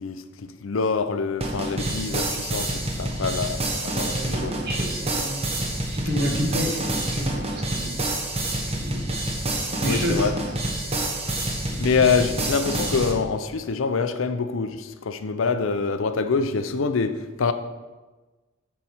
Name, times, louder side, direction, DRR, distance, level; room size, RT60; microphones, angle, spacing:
voice 1, 0.0-4.5 9.8-10.3 11.8-17.5, left 5 dB, 70° left, 0.5 m, -25 dB
sound 1, 1.4-13.1, right 1 dB, 30° right, 1.0 m, -27 dB
voice 2, 4.0-8.1 8.5-9.3 9.7-10.5 11.7-11.9, equal, 50° right, 1.8 m, -31 dB
6.9 x 4.7 x 5.7 m
head